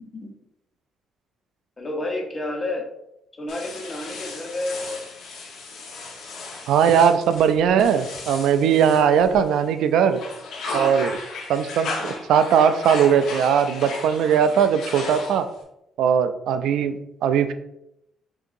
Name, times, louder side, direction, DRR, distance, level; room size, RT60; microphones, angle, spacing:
voice 1, 1.8-2.8 3.3-5.0 10.7-11.0 14.2-14.5, left 2 dB, 30° left, 1 dB, 1.1 m, -31 dB
sound 1, 3.5-9.7 10.0-15.6, left 3 dB, 80° left, 1.1 m, -35 dB
voice 2, 6.7-10.2 10.7-11.2 11.5-15.5 16.0-17.5, right 8 dB, 85° right, 10 dB, 0.3 m, -19 dB
6.1 x 2.8 x 2.6 m, 0.82 s
cardioid pair, 90°, 0 cm